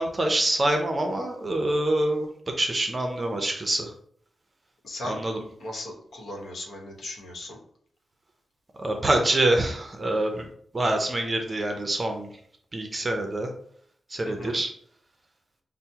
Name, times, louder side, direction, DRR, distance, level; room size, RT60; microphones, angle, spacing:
voice 1, 0.0-2.3 2.6-3.9 5.0-5.4 8.8-10.4 10.7-12.3 12.7-13.5 14.1-14.7, right 1 dB, 25° right, 4 dB, 0.5 m, -25 dB
voice 2, 4.8-5.2 5.6-7.6 14.2-14.6, left 1 dB, 75° left, 0 dB, 1.0 m, -37 dB
5.6 x 2.0 x 2.8 m, 0.62 s
wide cardioid pair, 135°, 0 cm